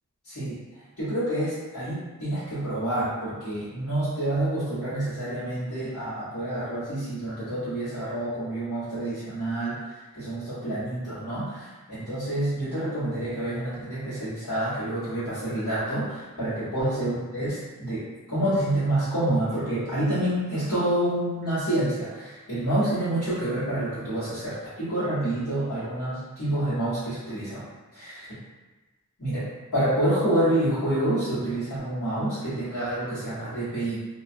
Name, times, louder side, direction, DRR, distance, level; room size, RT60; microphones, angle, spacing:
voice 1, 0.3-0.6 1.0-9.7 10.1-18.0 18.3-27.6 27.9-28.2 29.2-34.0, right 1 dB, 85° left, -16 dB, 1.2 m, -28 dB
2.3 x 2.3 x 2.6 m, 1.2 s
head